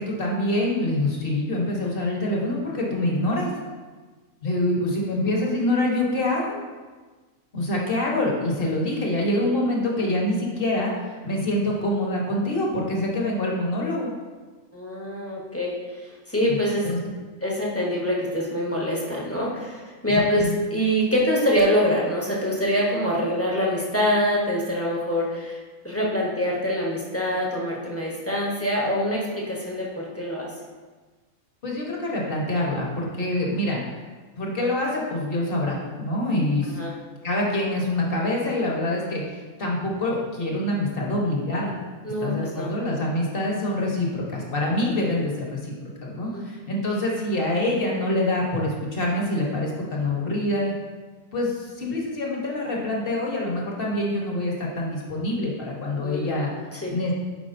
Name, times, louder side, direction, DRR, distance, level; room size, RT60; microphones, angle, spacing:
voice 1, 0.0-3.5 4.4-6.6 7.5-14.1 16.5-16.6 16.8-17.0 20.1-20.6 31.6-33.8 34.4-36.8 37.2-41.7 42.2-45.7 46.0-50.7 51.3-56.5 56.9-57.1, left 1 dB, 45° left, -2 dB, 1.3 m, -25 dB
voice 2, 14.7-16.9 17.4-25.6 25.8-30.5 36.6-36.9 42.0-42.7 46.2-46.5 56.0-56.3 56.7-56.9, equal, 10° left, -4 dB, 0.8 m, -25 dB
8.6 x 4.7 x 2.6 m, 1.3 s
omnidirectional pair, 1.4 m